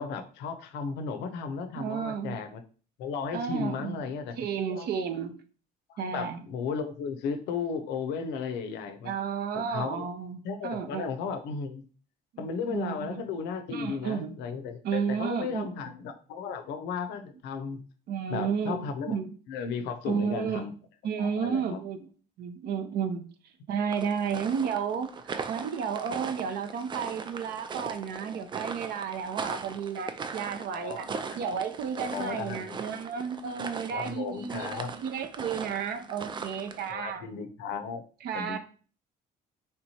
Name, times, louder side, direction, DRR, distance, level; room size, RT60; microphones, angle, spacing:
voice 1, 0.0-2.6 3.0-4.3 4.7-4.9 5.9-9.1 9.6-10.1 10.4-11.8 12.4-17.8 18.3-19.2 19.5-20.7 21.2-21.8 30.6-31.4 32.1-32.8 33.9-34.9 36.9-38.0 38.3-38.6, left 5 dB, 85° left, 8 dB, 0.5 m, -35 dB
voice 2, 1.7-2.4 3.3-4.0 4.4-5.3 6.0-6.4 9.0-11.1 12.3-13.2 13.7-14.3 14.8-15.9 18.1-19.3 20.0-20.7 21.0-22.1 22.4-23.2 23.7-31.1 31.4-37.3 38.2-38.6, right 7 dB, 70° right, 8 dB, 0.6 m, -32 dB
sound 1, 23.9-36.9, right 5 dB, 30° right, 0.3 m, -39 dB
3.4 x 2.9 x 2.8 m, 0.39 s
cardioid pair, 110°, 17 cm